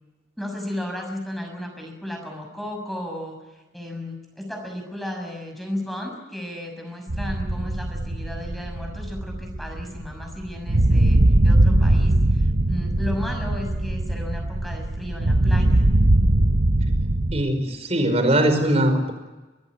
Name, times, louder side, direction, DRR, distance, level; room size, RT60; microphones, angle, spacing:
voice 1, 0.4-15.8, left 1 dB, ahead, 3 dB, 6.4 m, -34 dB
sound 1, 7.1-17.4, right 1 dB, 60° right, 1.1 m, -20 dB
voice 2, 17.3-19.1, right 1 dB, 35° right, 7 dB, 5.2 m, -21 dB
25.0 x 19.5 x 9.6 m, 1.2 s
head